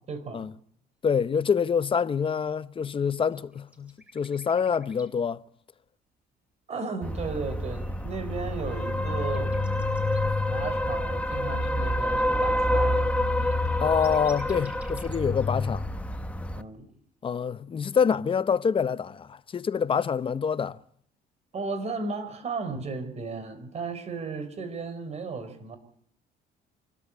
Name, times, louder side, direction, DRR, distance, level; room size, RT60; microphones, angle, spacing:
voice 1, 0.1-0.5 6.7-9.6 10.5-13.0 16.5-16.9 21.5-25.8, right 4 dB, 40° right, 4.3 m, -35 dB
voice 2, 1.0-5.4 13.8-15.9 17.2-20.8, left 6 dB, 30° left, 0.8 m, -26 dB
sound 1, 3.3-5.1 7.1-10.2 13.1-13.2 13.4-15.2 17.3-17.4, right 1 dB, 10° right, 7.9 m, -53 dB
sound 2, 7.0-16.6, left 1 dB, 10° left, 1.2 m, -27 dB
26.0 x 13.5 x 8.7 m
cardioid pair, 110°, 17 cm